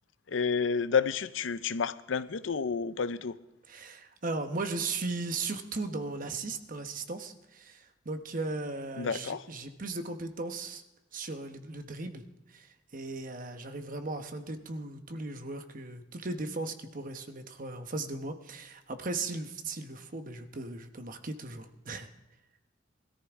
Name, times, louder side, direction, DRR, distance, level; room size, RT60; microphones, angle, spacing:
voice 1, 0.3-3.4 9.0-9.4, left 6 dB, 80° left, 0.6 m, -30 dB
voice 2, 3.7-10.8 11.1-22.1, right 3 dB, 45° right, 1.0 m, -37 dB
21.0 x 13.5 x 3.6 m
head